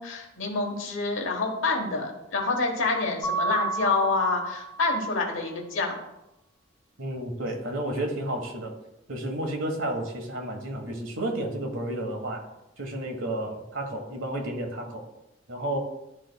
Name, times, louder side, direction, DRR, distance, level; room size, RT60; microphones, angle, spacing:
voice 1, 0.0-6.0, left 3 dB, 75° left, 1 dB, 1.1 m, -27 dB
Mallet percussion, 3.2-5.0, right 3 dB, 20° left, 2.0 m, -31 dB
voice 2, 7.0-8.7 9.1-12.5 12.8-15.0 15.5-15.8, right 1 dB, 80° right, 3 dB, 1.3 m, -31 dB
11.5 x 4.0 x 2.2 m, 0.92 s
head